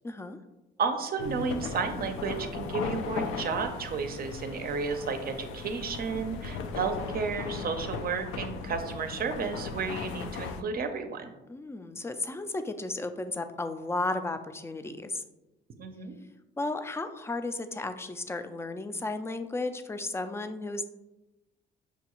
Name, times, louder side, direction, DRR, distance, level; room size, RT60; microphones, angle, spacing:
voice 1, 0.0-0.4 11.5-15.2 16.6-20.9, left 2 dB, 15° left, 8 dB, 0.3 m, -34 dB
voice 2, 0.8-11.3 15.8-16.1, right 5 dB, 50° right, 7 dB, 0.5 m, -32 dB
sound 1, 1.2-10.6, left 5 dB, 90° left, 0.4 m, -37 dB
5.9 x 2.3 x 2.9 m, 1.0 s
cardioid pair, 90°, 20 cm